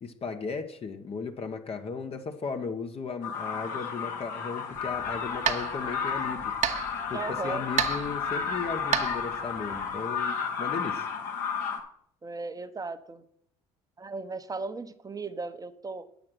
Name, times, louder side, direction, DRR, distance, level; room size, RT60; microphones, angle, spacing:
voice 1, 0.0-6.5 7.1-11.1, left 5 dB, 40° left, 5 dB, 1.1 m, -36 dB
sound 1, 3.2-11.8, left 6 dB, 65° left, 1.9 m, -32 dB
sound 2, 4.7-10.0, right 9 dB, 50° right, 1.0 m, -33 dB
voice 2, 7.1-7.7 12.2-13.2 14.0-16.1, right 3 dB, 25° right, 11 dB, 1.0 m, -36 dB
8.7 x 7.1 x 6.2 m, 0.66 s
hypercardioid pair, 60°, 15 cm